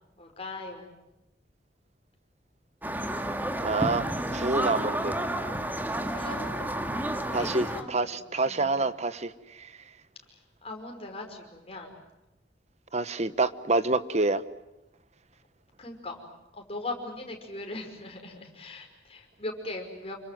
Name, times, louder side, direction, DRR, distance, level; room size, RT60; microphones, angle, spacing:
voice 1, 0.2-0.9 6.1-8.1 8.4-8.9 10.3-11.9 15.8-16.2 16.5-20.2, left 2 dB, 35° left, 3 dB, 5.4 m, -40 dB
sound 1, 2.8-7.8, right 1 dB, 10° right, 1.9 m, -31 dB
voice 2, 3.6-4.1 4.3-5.1 7.3-9.7 12.9-14.4, right 3 dB, 40° right, 14 dB, 1.1 m, -27 dB
28.0 x 25.0 x 7.7 m, 0.96 s
head